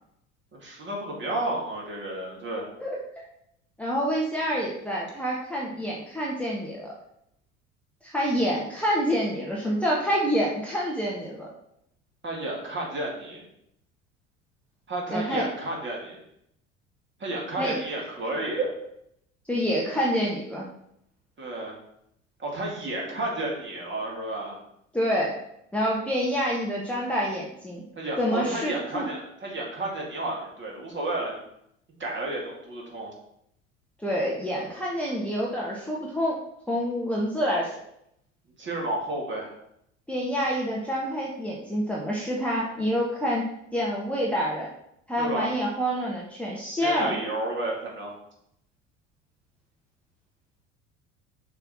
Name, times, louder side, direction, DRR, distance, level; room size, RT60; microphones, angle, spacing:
voice 1, 0.5-2.7 12.2-13.4 14.9-16.2 17.2-18.7 21.4-21.8 22.4-24.5 28.0-31.4 32.0-33.1 38.6-39.5 45.2-45.5 46.8-48.2, right 2 dB, 30° right, -3 dB, 2.7 m, -31 dB
voice 2, 3.8-6.9 8.0-11.5 15.1-15.4 17.6-17.8 19.5-20.6 24.9-25.3 25.7-27.8 28.2-29.1 34.0-36.4 36.7-37.7 40.1-43.4 43.7-44.7 45.1-47.2, equal, 5° left, -5 dB, 1.3 m, -27 dB
6.7 x 3.4 x 6.0 m, 0.75 s
figure-of-eight pair, 65°, 39 cm